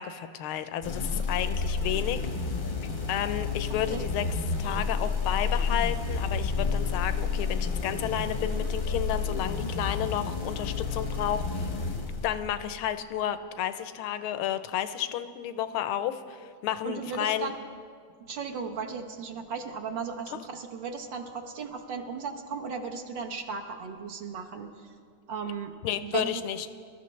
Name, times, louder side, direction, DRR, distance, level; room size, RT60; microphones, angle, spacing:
voice 1, 0.0-2.2 3.1-4.3 4.6-11.7 12.2-16.4 16.6-17.5 20.3-20.4 25.8-26.7, left 10 dB, 85° left, 11 dB, 1.5 m, -31 dB
sound 1, 0.8-12.8, left 4 dB, 40° left, 0.7 m, -30 dB
voice 2, 16.8-17.6 18.3-24.7 25.3-25.7 26.0-26.3, right 5 dB, 65° right, 2 dB, 1.6 m, -36 dB
23.5 x 13.0 x 3.2 m, 2.1 s
omnidirectional pair, 2.3 m